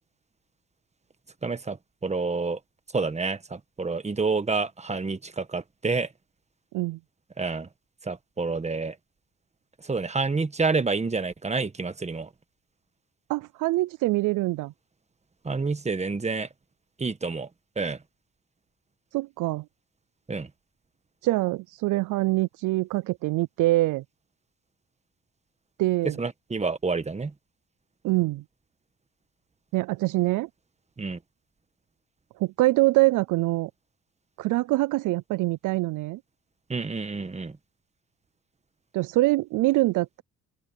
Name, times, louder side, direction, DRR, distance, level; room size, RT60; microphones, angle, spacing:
voice 1, 1.4-2.6 2.9-6.1 7.4-7.7 8.0-9.0 9.8-12.3 15.4-16.5 17.0-17.5 17.8-18.0 20.3-20.5 26.2-27.3 31.0-31.2 36.7-37.6, right 4 dB, 20° right, 1.5 m, -28 dB
voice 2, 13.3-14.7 19.1-19.6 21.2-24.0 25.8-26.1 28.0-28.4 29.7-30.5 32.4-33.7 34.4-36.2 38.9-40.2, right 19 dB, 85° right, 0.5 m, -24 dB
open air
cardioid pair, 90°, 30 cm